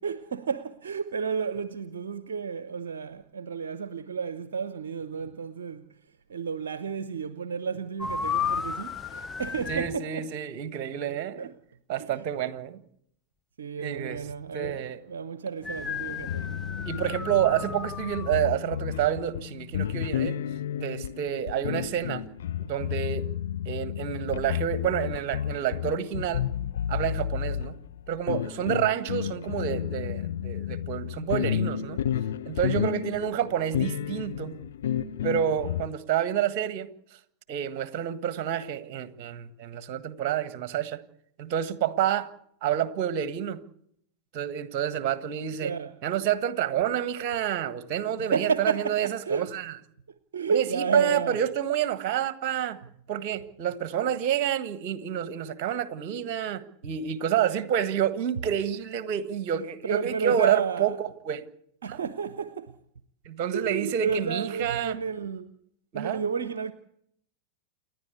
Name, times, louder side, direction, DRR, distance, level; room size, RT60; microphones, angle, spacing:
voice 1, 0.0-5.9 6.3-10.3 11.1-11.5 12.0-12.2 13.6-16.6 45.6-45.9 48.2-49.5 50.3-51.4 59.9-61.0 61.8-62.8 63.5-65.5 65.9-66.7, right 6 dB, 65° right, 0.8 m, -31 dB
sound 1, 8.0-10.0 15.6-18.3, left 6 dB, 20° left, 0.7 m, -33 dB
voice 2, 9.7-11.5 11.9-12.8 13.8-14.2 14.5-15.0 16.8-20.4 20.7-22.2 22.6-23.2 23.6-26.4 26.9-27.7 28.1-32.0 32.4-34.6 35.2-36.9 37.5-41.0 41.4-42.3 42.6-43.6 44.3-45.7 46.0-49.7 50.5-52.8 53.1-61.4 61.9-62.0 63.2-65.0 65.9-66.2, right 10 dB, 40° right, 1.6 m, -29 dB
sound 2, 16.1-35.9, left 10 dB, 60° left, 0.8 m, -32 dB
29.0 x 11.0 x 8.3 m
figure-of-eight pair, 90°, 0 cm